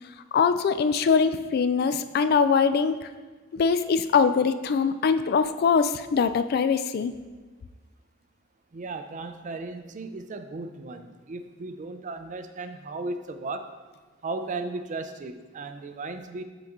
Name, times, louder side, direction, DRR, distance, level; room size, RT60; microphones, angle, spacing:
voice 1, 0.3-3.1 3.5-7.1, left 5 dB, 50° left, 12 dB, 0.3 m, -22 dB
voice 2, 8.7-13.7 14.2-16.4, right 3 dB, 40° right, 9 dB, 0.4 m, -36 dB
8.2 x 4.0 x 3.6 m, 1.4 s
head